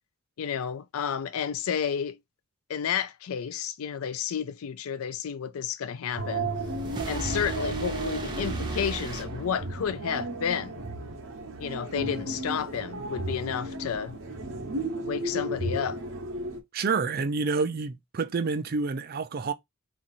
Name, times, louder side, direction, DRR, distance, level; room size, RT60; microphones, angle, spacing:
voice 1, 0.4-2.2 2.7-6.5 7.1-10.8 11.6-14.2 15.0-16.0, left 8 dB, 85° left, 0.4 m, -31 dB
sound 1, 6.2-16.6, right 2 dB, 75° right, 1.0 m, -34 dB
sound 2, 6.4-10.0, right 1 dB, 20° right, 0.8 m, -37 dB
voice 2, 16.7-19.5, right 4 dB, 45° right, 0.4 m, -28 dB
3.0 x 2.5 x 4.0 m
head